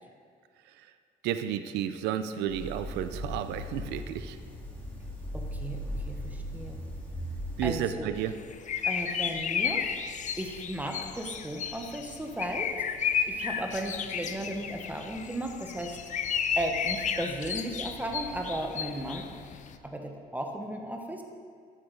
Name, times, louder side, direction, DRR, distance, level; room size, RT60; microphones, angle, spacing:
voice 1, 1.2-4.4 7.6-8.3, right 10 dB, 85° right, 11 dB, 0.6 m, -32 dB
sound 1, 2.5-7.9, equal, 10° left, 2.5 m, -38 dB
voice 2, 5.3-5.8 6.1-6.8 7.6-8.1 8.8-9.8 10.4-12.7 13.1-16.0 16.3-19.3 19.8-21.2, right 1 dB, 10° right, 2 dB, 1.0 m, -35 dB
sound 2, 8.2-19.8, left 7 dB, 45° left, 0.6 m, -33 dB
13.0 x 8.5 x 4.0 m, 2.1 s
cardioid pair, 110°, 17 cm